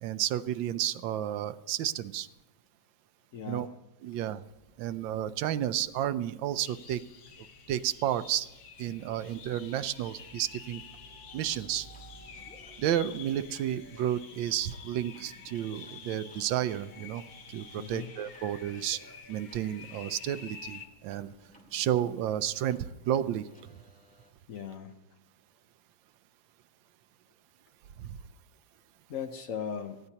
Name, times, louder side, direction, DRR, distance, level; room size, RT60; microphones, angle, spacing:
voice 1, 0.0-2.3 3.5-3.7 4.0-4.4 4.8-7.0 7.7-8.5 8.8-10.8 11.3-11.9 12.8-17.2 17.5-19.0 19.3-21.3 21.7-23.5 28.0-28.2, right 11 dB, 85° right, 13 dB, 1.4 m, -31 dB
voice 2, 3.3-3.8 17.7-18.1 24.5-24.9 29.1-30.0, left 7 dB, 60° left, 7 dB, 1.0 m, -38 dB
sound 1, 4.4-22.9, right 3 dB, 30° left, 3.4 m, -61 dB
sound 2, 6.6-20.9, left 6 dB, 90° left, 1.8 m, -49 dB
sound 3, 11.5-24.3, equal, 5° left, 2.0 m, -61 dB
18.5 x 13.5 x 2.9 m, 1.1 s
omnidirectional pair, 2.0 m